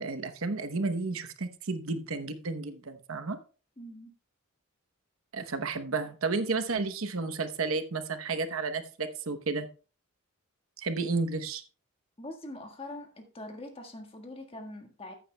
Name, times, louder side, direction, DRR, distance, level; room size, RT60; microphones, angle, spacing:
voice 1, 0.0-3.4 5.3-9.7 10.8-11.6, right 3 dB, 75° right, 9 dB, 0.9 m, -32 dB
voice 2, 3.8-4.1 12.2-15.1, left 1 dB, 25° left, 4 dB, 1.5 m, -43 dB
14.0 x 8.6 x 2.2 m, 0.36 s
head